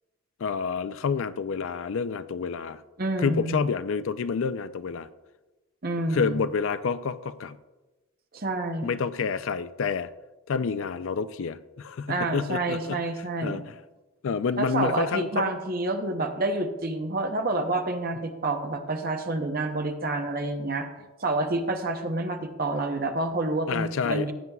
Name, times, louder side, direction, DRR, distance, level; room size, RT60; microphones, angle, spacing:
voice 1, 0.4-2.8 3.2-5.1 6.1-7.6 8.8-10.1 10.5-13.0 13.4-13.7 14.2-15.5 23.7-24.3, left 5 dB, 65° left, 14 dB, 0.4 m, -28 dB
voice 2, 3.0-3.6 5.8-6.4 8.3-8.9 12.1-13.6 14.6-20.9 21.2-24.3, right 2 dB, 45° right, 5 dB, 0.8 m, -28 dB
15.5 x 9.2 x 2.3 m, 1.1 s
head